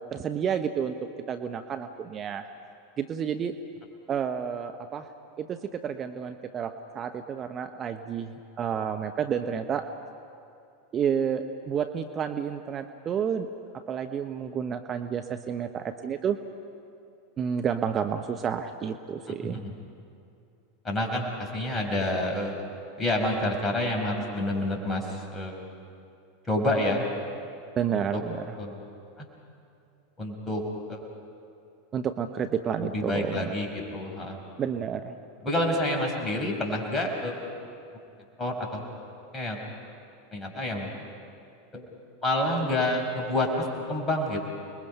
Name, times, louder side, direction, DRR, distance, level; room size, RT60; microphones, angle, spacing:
voice 1, 0.0-2.5 3.0-3.6 4.1-5.1 5.4-9.9 10.9-13.5 13.7-16.4 17.4-19.6 27.8-28.6 31.9-33.5 34.6-35.1, right 7 dB, 30° right, 7 dB, 0.9 m, -30 dB
voice 2, 20.8-22.6 23.0-25.6 26.4-27.1 27.9-28.2 28.6-28.8 29.2-29.3 30.2-30.6 30.9-31.0 32.8-34.4 35.4-37.5 38.4-38.8 39.3-39.6 40.3-40.9 41.7-41.9 42.2-44.4, left 1 dB, 20° left, 1 dB, 5.5 m, -28 dB
30.0 x 21.5 x 5.5 m, 2.5 s
hypercardioid pair, 90°, 0 cm